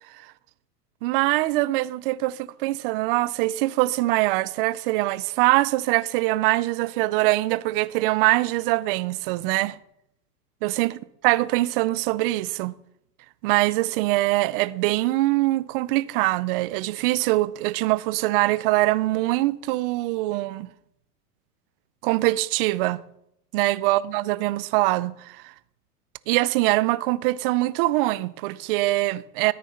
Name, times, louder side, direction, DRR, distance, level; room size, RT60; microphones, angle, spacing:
voice 1, 1.0-9.8 10.6-11.0 11.2-12.7 13.4-20.7 22.0-23.0 23.5-25.5 26.3-29.5, right 19 dB, 35° right, 0.5 m, -23 dB
13.5 x 9.7 x 5.7 m
supercardioid pair, 140°, 48 cm